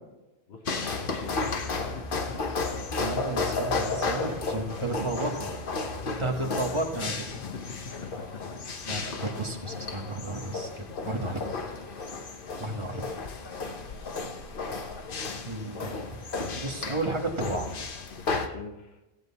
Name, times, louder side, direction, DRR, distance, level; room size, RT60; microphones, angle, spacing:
voice 1, 0.5-2.3 6.2-7.1 7.5-8.4 11.8-11.9 12.5-12.8 18.1-19.0, left 4 dB, 80° left, 3 dB, 1.4 m, -43 dB
sound 1, 0.7-18.5, left 4 dB, 60° left, 1.1 m, -33 dB
voice 2, 3.0-5.5 6.0-7.1 8.9-11.5 12.6-13.1 15.4-16.0 16.5-17.7, right 2 dB, 30° right, 2 dB, 1.5 m, -32 dB
15.5 x 7.9 x 4.1 m, 1.0 s
omnidirectional pair, 1.0 m